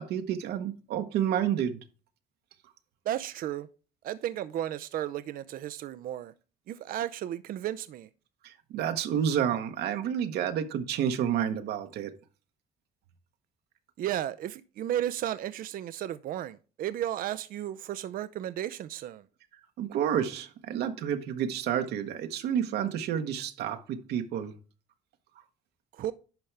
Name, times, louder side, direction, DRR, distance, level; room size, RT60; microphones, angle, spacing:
voice 1, 0.0-1.8 8.4-12.1 19.8-24.5, right 9 dB, 75° right, 1.1 m, -30 dB
voice 2, 3.1-3.7 4.0-6.3 6.7-8.1 14.0-19.2 25.9-26.1, right 12 dB, 60° right, 0.5 m, -34 dB
10.5 x 5.3 x 3.4 m
cardioid pair, 110°, 17 cm